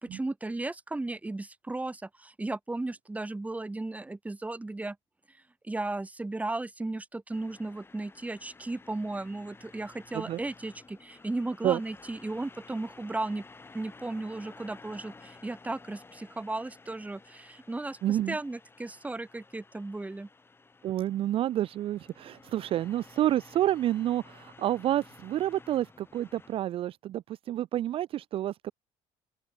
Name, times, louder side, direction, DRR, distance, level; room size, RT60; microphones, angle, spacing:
voice 1, 0.0-5.0 5.6-13.4 13.7-20.3, right 2 dB, 10° right, 3.1 m, -35 dB
sound 1, 7.3-26.6, left 3 dB, 20° left, 7.1 m, -54 dB
voice 2, 18.0-18.4 20.8-28.7, right 12 dB, 50° right, 0.4 m, -29 dB
open air
cardioid pair, 115°, 12 cm